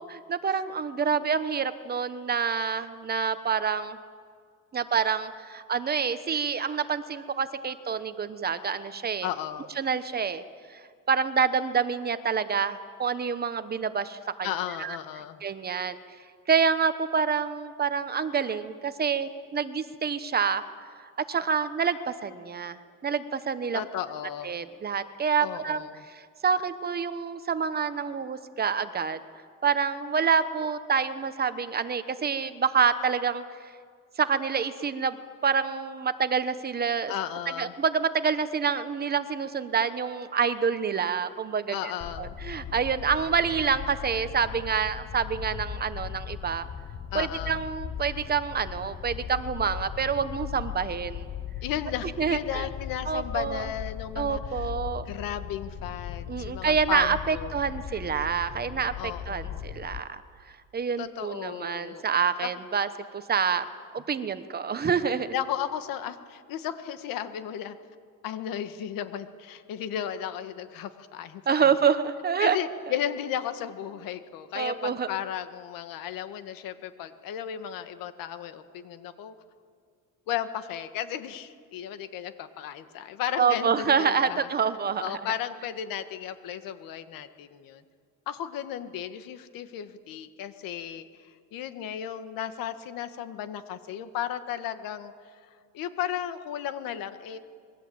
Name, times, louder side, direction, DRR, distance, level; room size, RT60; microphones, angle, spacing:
voice 1, 0.1-4.0 4.7-9.3 9.8-10.4 10.7-10.8 11.1-14.5 14.8-15.0 15.4-16.0 16.5-20.6 21.3-23.8 24.4-29.2 29.6-33.4 34.2-35.2 35.4-37.1 37.6-41.9 42.2-46.6 47.1-51.3 52.2-52.7 53.0-53.7 54.1-55.0 56.3-60.2 60.7-62.9 63.1-63.7 63.9-65.3 71.5-72.6 74.5-75.1 83.4-85.2, right 6 dB, 30° right, 11 dB, 1.1 m, -27 dB
voice 2, 9.2-9.7 14.4-15.4 23.7-24.5 25.4-26.0 37.1-37.7 41.7-42.4 47.1-47.6 51.6-54.7 55.1-57.5 59.0-59.6 61.0-62.0 62.4-62.5 65.3-67.8 68.2-71.7 72.4-79.3 80.3-84.5 85.0-87.8 88.3-95.1 95.7-97.4, left 10 dB, 85° left, 10 dB, 1.7 m, -34 dB
sound 1, 42.0-60.0, left 9 dB, 30° left, 0.8 m, -38 dB
27.0 x 22.0 x 8.7 m, 2.1 s
cardioid pair, 150°, 33 cm